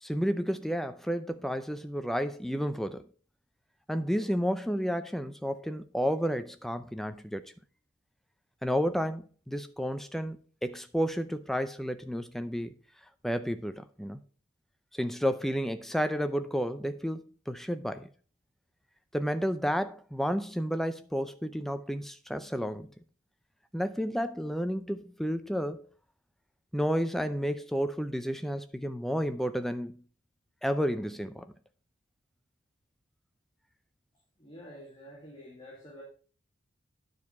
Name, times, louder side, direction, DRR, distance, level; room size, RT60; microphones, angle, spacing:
voice 1, 0.0-3.1 3.9-7.4 8.6-10.4 10.6-12.7 13.2-14.2 14.9-18.1 19.1-22.9 23.7-25.9 26.7-30.0 30.6-31.5, equal, ahead, 0.5 m, -31 dB
voice 2, 34.4-36.0, equal, 20° left, 2.2 m, -48 dB
9.6 x 4.7 x 5.4 m
head